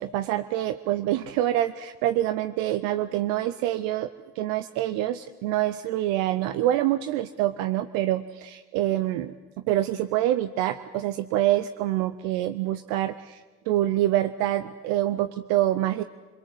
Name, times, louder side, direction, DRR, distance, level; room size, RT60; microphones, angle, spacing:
voice 1, 0.0-4.1 4.4-16.0, right 13 dB, 85° right, 10 dB, 0.7 m, -26 dB
23.5 x 22.0 x 7.9 m, 1.3 s
hypercardioid pair, 55°, 32 cm